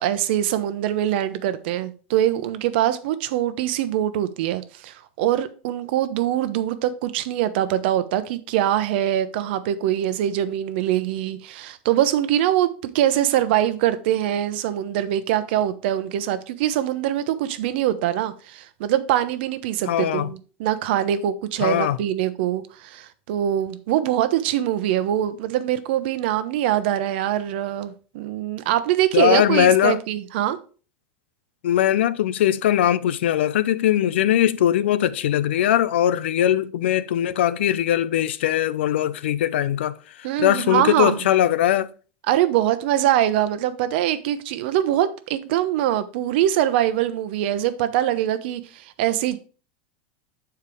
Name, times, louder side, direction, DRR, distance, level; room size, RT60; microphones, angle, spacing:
voice 1, 0.0-30.6 40.2-41.3 42.3-49.4, right 12 dB, 70° right, 0.8 m, -23 dB
voice 2, 19.9-20.3 21.6-22.0 29.1-30.0 31.6-39.9 40.4-41.9, left 11 dB, 90° left, 0.5 m, -20 dB
6.9 x 4.6 x 4.8 m
supercardioid pair, 130°, 6 cm